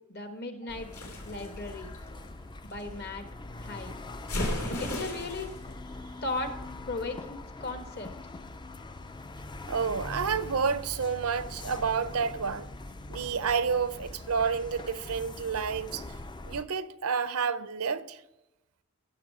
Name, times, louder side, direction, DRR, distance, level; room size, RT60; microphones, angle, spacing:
voice 1, 0.1-0.9 1.2-1.9 2.6-3.3 3.6-4.0 4.8-5.6 6.2-6.5 6.9-8.1, left 2 dB, 50° left, 1.4 m, -36 dB
sound 1, 0.7-16.6, left 2 dB, 20° left, 0.5 m, -42 dB
sound 2, 0.9-2.8 4.3-5.6, left 1 dB, 80° left, 3.0 m, -35 dB
voice 2, 9.7-12.7 13.1-16.1 16.4-18.2, right 6 dB, 75° right, 0.7 m, -30 dB
15.5 x 6.4 x 4.8 m
head